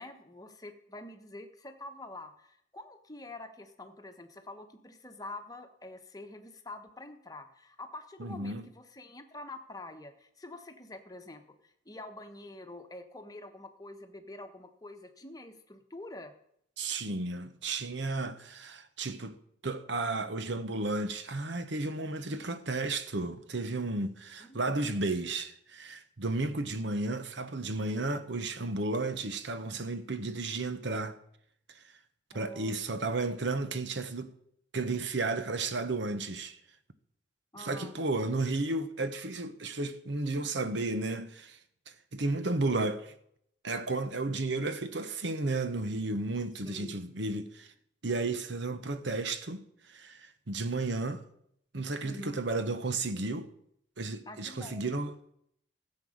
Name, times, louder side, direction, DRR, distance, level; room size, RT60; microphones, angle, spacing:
voice 1, 0.0-16.3 24.4-24.6 32.3-32.8 37.5-38.0 46.6-47.0 52.0-52.4 54.3-55.0, left 2 dB, 20° left, 1.1 m, -46 dB
voice 2, 8.2-8.7 16.8-19.4 19.6-31.2 31.7-31.8 32.3-34.3 34.7-36.6 37.6-41.6 42.1-43.1 43.6-47.7 48.0-51.2 51.7-53.5 54.0-55.1, right 2 dB, 65° right, 1.0 m, -33 dB
15.0 x 7.6 x 6.4 m
head